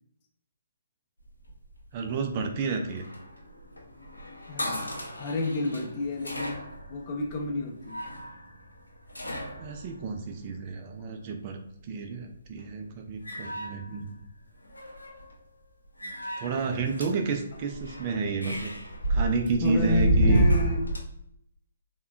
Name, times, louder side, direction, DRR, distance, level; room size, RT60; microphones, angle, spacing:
sound 1, 1.3-11.0 12.3-12.7 13.1-14.4 14.6-15.3 16.0-21.0, equal, 90° left, 0.6 m, -31 dB
voice 1, 1.9-3.0 9.6-11.6 11.8-14.2 16.4-18.7 19.1-20.5, right 4 dB, 35° right, 0.3 m, -30 dB
voice 2, 4.5-4.9 5.2-8.1 19.6-20.9, left 2 dB, 30° left, 0.5 m, -30 dB
3.4 x 2.2 x 2.3 m
figure-of-eight pair, 135°, 0 cm